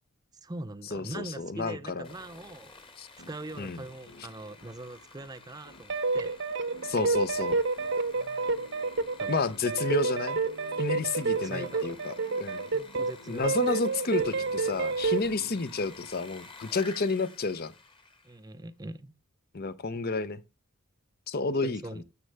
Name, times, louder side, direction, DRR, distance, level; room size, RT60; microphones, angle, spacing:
voice 1, 0.4-2.7 3.3-6.4 9.0-9.5 11.4-12.0 12.7-13.6 18.2-19.1 21.4-22.0, right 2 dB, 15° right, 0.5 m, -42 dB
voice 2, 0.9-2.1 3.0-3.1 3.6-3.8 6.8-7.6 9.3-10.4 10.8-12.7 13.3-17.7 19.5-20.4 21.3-22.0, left 3 dB, 45° left, 0.7 m, -31 dB
Sawing, 2.0-18.5, left 3 dB, 25° left, 1.3 m, -52 dB
sound 1, 3.2-16.8, left 1 dB, 80° left, 1.5 m, -55 dB
sound 2, 5.9-13.1 13.4-15.3, right 4 dB, 55° right, 0.8 m, -29 dB
12.5 x 7.6 x 3.4 m
head